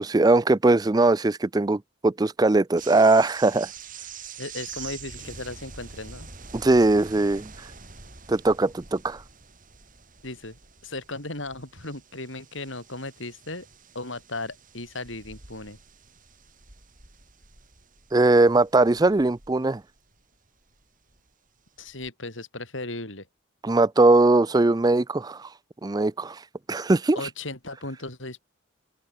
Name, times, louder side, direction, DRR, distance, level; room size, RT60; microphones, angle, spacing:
voice 1, 0.0-3.7 6.5-7.5 8.3-9.2 18.1-19.8 23.6-25.5 25.8-26.4 26.7-27.2, right 2 dB, 20° right, 0.4 m, -20 dB
sound 1, 2.8-21.3 21.7-22.1, right 6 dB, 40° right, 7.1 m, -46 dB
voice 2, 4.4-6.3 10.2-10.6 10.8-13.7 13.9-15.8 21.8-23.3 27.2-28.4, left 2 dB, 70° left, 7.7 m, -36 dB
open air
head